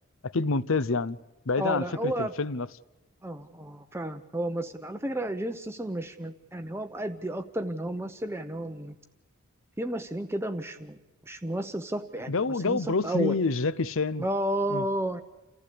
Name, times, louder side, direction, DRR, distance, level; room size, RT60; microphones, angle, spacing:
voice 1, 0.2-1.2 1.5-2.7 12.3-14.3 14.7-14.8, left 3 dB, 60° left, 0.7 m, -27 dB
voice 2, 1.6-2.3 3.2-8.9 9.8-11.0 11.3-12.3 12.6-13.4 14.2-15.2, right 1 dB, 10° right, 0.8 m, -32 dB
29.5 x 15.0 x 8.4 m
head